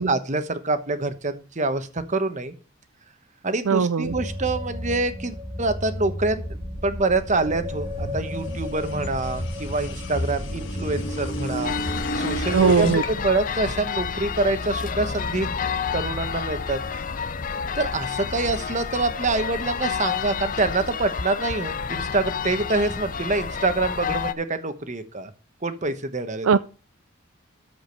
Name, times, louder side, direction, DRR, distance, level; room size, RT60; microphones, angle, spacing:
voice 1, 0.0-2.5 3.4-6.4 6.8-11.7 12.1-15.5 15.9-16.8 17.7-25.3 25.6-26.6, right 2 dB, 35° right, 1.2 m, -26 dB
voice 2, 3.7-4.1 12.5-13.0 26.4-26.6, right 5 dB, 75° right, 0.5 m, -19 dB
sound 1, 4.1-12.5, left 1 dB, 15° right, 1.6 m, -35 dB
sound 2, 5.5-13.1, equal, 60° left, 1.5 m, -32 dB
sound 3, 11.6-24.3, left 6 dB, 40° left, 0.6 m, -30 dB
13.5 x 5.1 x 6.5 m
head